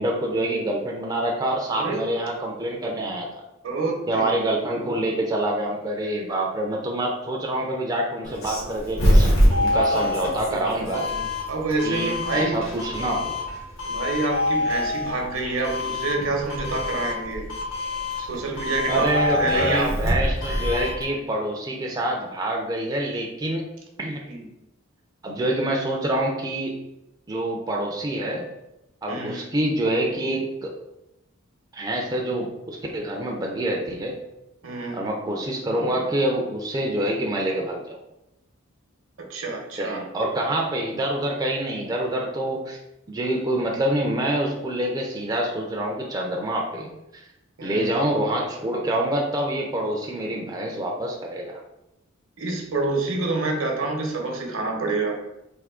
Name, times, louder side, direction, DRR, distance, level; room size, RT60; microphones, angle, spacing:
voice 1, 0.0-3.3 4.1-9.3 9.6-11.1 11.8-13.3 18.9-23.7 24.0-24.2 25.2-26.7 27.3-28.4 29.0-30.7 31.7-34.1 34.9-38.0 39.8-42.8 43.1-47.2 47.6-51.6, right 1 dB, 20° right, -1 dB, 0.4 m, -26 dB
voice 2, 1.7-2.0 3.6-4.3 11.5-12.6 13.8-17.5 18.2-19.9 20.5-20.6 24.3-24.4 29.1-29.4 34.6-35.0 39.3-40.0 47.6-47.9 52.4-55.2, right 3 dB, 70° right, 1 dB, 0.8 m, -27 dB
Doorbell, 8.2-21.0, left 1 dB, 75° left, 1.4 m, -24 dB
3.5 x 2.6 x 3.6 m, 0.91 s
head